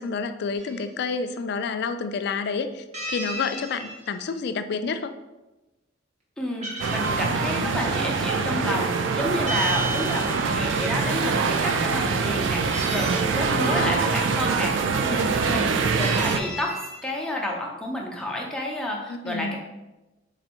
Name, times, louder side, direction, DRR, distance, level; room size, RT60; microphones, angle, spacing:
voice 1, 0.0-5.1 12.2-12.4 13.5-13.9 19.1-19.6, left 5 dB, 60° left, 9 dB, 0.3 m, -29 dB
sound 1, 0.6-0.8 2.9-4.1 6.5-7.5 9.5-10.7 12.7-14.0 16.0-17.1, right 1 dB, 35° right, 1.0 m, -34 dB
voice 2, 6.4-19.6, left 1 dB, 5° left, -2 dB, 0.6 m, -30 dB
sound 2, 6.8-16.4, right 5 dB, 75° right, 0.4 m, -24 dB
3.8 x 2.6 x 4.3 m, 1.0 s
head